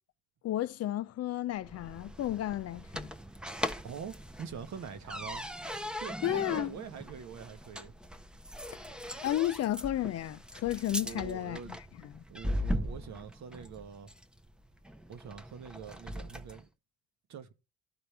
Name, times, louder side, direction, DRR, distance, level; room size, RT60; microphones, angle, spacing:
voice 1, 0.4-3.1 6.2-6.8 8.7-8.8 9.2-12.2, left 13 dB, 55° left, 0.4 m, -33 dB
sound 1, 1.6-16.6, equal, 5° right, 0.6 m, -40 dB
voice 2, 3.8-5.5 6.0-7.9 11.0-11.8 12.3-14.1 15.1-16.7 17.3-17.5, right 7 dB, 65° right, 1.1 m, -44 dB
12.5 x 4.3 x 3.3 m
cardioid pair, 90°, 30 cm